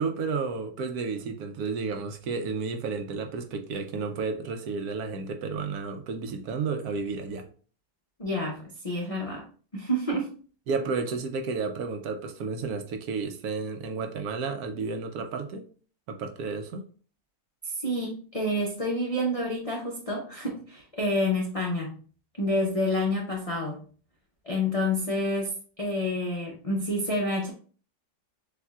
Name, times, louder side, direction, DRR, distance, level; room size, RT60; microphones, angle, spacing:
voice 1, 0.0-7.5 10.7-15.6 16.1-16.8, right 4 dB, 70° right, 1.0 m, -32 dB
voice 2, 8.2-9.5 9.7-10.3 17.6-22.0 22.4-23.8 24.4-27.5, left 1 dB, 60° left, 0.3 m, -28 dB
6.7 x 2.6 x 2.3 m
omnidirectional pair, 1.8 m